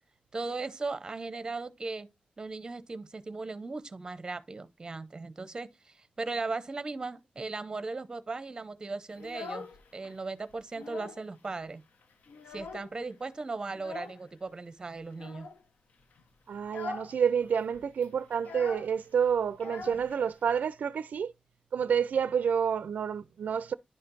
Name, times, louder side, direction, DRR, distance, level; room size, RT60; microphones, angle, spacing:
voice 1, 0.3-2.1 2.4-9.7 9.9-11.8 12.5-15.5, right 3 dB, 25° right, 0.6 m, -37 dB
Child speech kid speaking, 9.1-10.2 10.5-11.3 11.6-11.7 12.0-13.1 13.7-14.2 15.1-15.6 16.0-16.2 16.6-17.2 17.4-17.5 17.7-20.5, left 4 dB, 75° left, 0.9 m, -43 dB
voice 2, 16.5-21.3 21.7-23.7, right 7 dB, 70° right, 0.4 m, -29 dB
11.0 x 4.3 x 2.5 m
wide cardioid pair, 165°, 3 cm